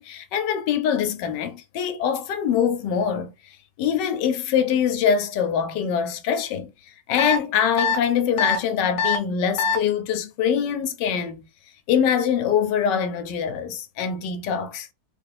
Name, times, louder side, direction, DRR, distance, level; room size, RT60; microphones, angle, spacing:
voice 1, 0.0-3.3 3.8-6.7 7.1-11.4 11.9-14.9, left 8 dB, 85° left, 1.3 m, -24 dB
sound 1, 7.2-7.4 7.8-8.0 8.4-8.6 9.0-9.2 9.6-9.8, left 5 dB, 55° left, 1.0 m, -21 dB
3.4 x 2.4 x 3.3 m
omnidirectional pair, 1.9 m